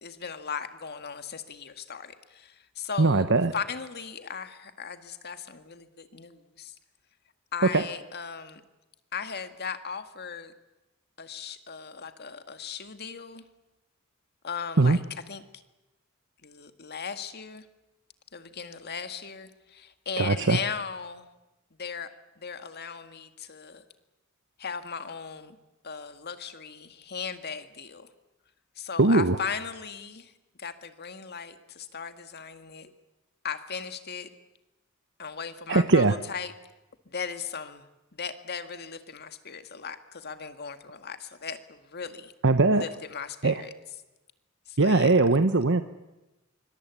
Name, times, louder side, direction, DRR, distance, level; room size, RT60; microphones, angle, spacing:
voice 1, 0.0-3.3 3.5-6.8 7.5-8.6 9.1-10.5 11.2-13.4 14.4-15.0 15.3-15.4 16.4-17.6 18.3-21.3 21.8-23.8 24.6-25.6 25.8-28.1 28.8-30.3 30.6-32.9 33.4-34.3 35.2-36.5 37.1-37.9 38.1-42.3 42.7-43.7 44.7-45.1, left 6 dB, 50° left, 8 dB, 1.9 m, -37 dB
voice 2, 3.0-3.5 7.7-7.8 14.8-15.0 20.2-20.6 29.0-29.4 35.7-36.1 42.4-42.8 43.4-43.6 44.8-45.8, right 3 dB, 60° right, 9 dB, 1.0 m, -20 dB
25.5 x 24.5 x 8.3 m, 1.0 s
head